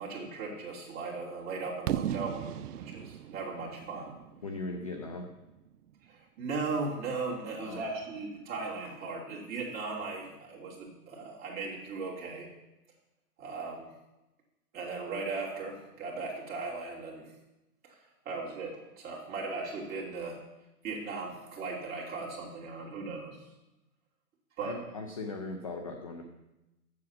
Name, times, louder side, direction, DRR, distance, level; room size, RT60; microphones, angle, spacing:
voice 1, 0.0-4.1 6.1-12.5 13.4-13.9 14.7-17.2 17.8-18.0 18.2-20.4 20.8-23.4 24.6-24.8, right 3 dB, 20° right, -4 dB, 2.5 m, -37 dB
Fireworks, 1.9-5.7, right 10 dB, 85° right, 0.6 m, -37 dB
voice 2, 4.4-5.3 7.6-7.9 24.6-26.2, left 3 dB, 25° left, 4 dB, 0.4 m, -39 dB
7.6 x 7.2 x 7.0 m, 0.97 s
hypercardioid pair, 145°, 46 cm